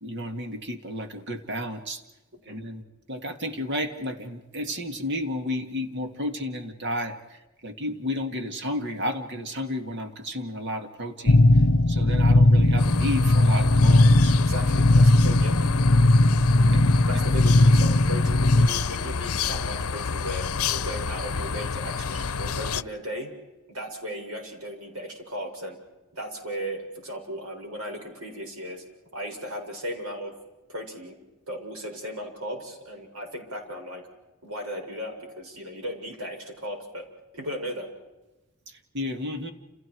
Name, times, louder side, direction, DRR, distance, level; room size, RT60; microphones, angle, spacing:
voice 1, 0.0-2.0 2.5-2.8 3.1-14.3 16.7-16.8 17.1-17.2 38.7-39.5, left 1 dB, 50° right, 6 dB, 2.3 m, -32 dB
sound 1, 11.3-18.7, left 1 dB, 55° left, 1.1 m, -18 dB
sound 2, 12.8-22.8, left 5 dB, 80° left, 0.7 m, -30 dB
voice 2, 14.3-15.7 17.1-23.3 23.7-25.8 26.1-28.8 29.1-30.4 30.7-31.2 31.5-34.0 34.4-37.1 37.3-37.9, equal, 75° right, 2 dB, 6.9 m, -36 dB
30.0 x 29.5 x 4.8 m, 1.1 s
head